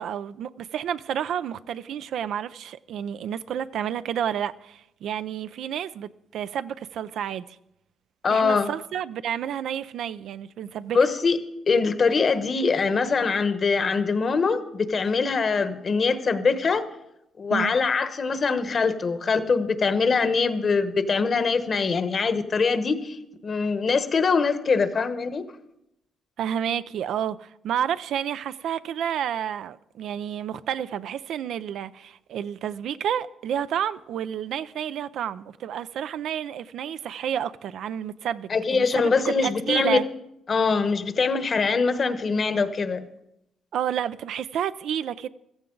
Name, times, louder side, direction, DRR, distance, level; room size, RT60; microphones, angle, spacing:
voice 1, 0.0-7.6 8.3-11.0 17.5-17.7 26.4-40.0 43.7-45.3, right 9 dB, 75° right, 0.4 m, -30 dB
voice 2, 8.2-8.7 10.9-11.4 11.7-16.8 17.4-25.4 38.5-40.0 40.5-43.0, left 4 dB, 45° left, 1.1 m, -23 dB
16.0 x 14.0 x 3.9 m
cardioid pair, 90°, 0 cm